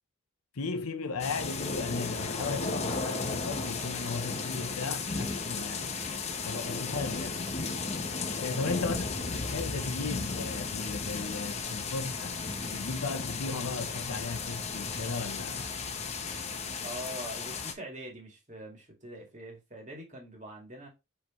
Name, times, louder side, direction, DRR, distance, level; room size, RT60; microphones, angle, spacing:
voice 1, 0.5-5.9 6.5-7.4 8.4-9.1 9.3-12.4 12.7-15.7, left 4 dB, 80° left, 0.7 m, -36 dB
sound 1, 1.2-17.7, left 4 dB, 30° left, 0.8 m, -35 dB
voice 2, 5.0-5.6 6.7-7.0 8.4-8.9 16.8-20.9, right 1 dB, 30° right, 2.0 m, -44 dB
6.0 x 5.1 x 3.1 m
head